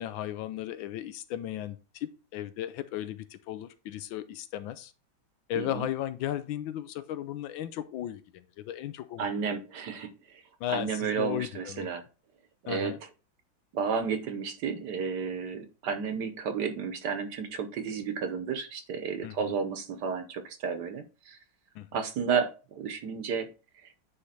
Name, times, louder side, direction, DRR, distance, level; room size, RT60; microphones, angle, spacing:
voice 1, 0.0-4.9 5.5-9.3 9.5-9.6 10.6-11.9 12.7-13.0 19.2-19.5 21.7-21.9, left 12 dB, 80° left, 12 dB, 1.4 m, -35 dB
voice 2, 5.6-5.9 9.2-10.4 10.7-12.0 12.6-12.9 13.7-21.4 21.9-23.5, right 6 dB, 65° right, 8 dB, 1.3 m, -32 dB
9.4 x 3.2 x 4.2 m, 0.32 s
omnidirectional pair, 2.2 m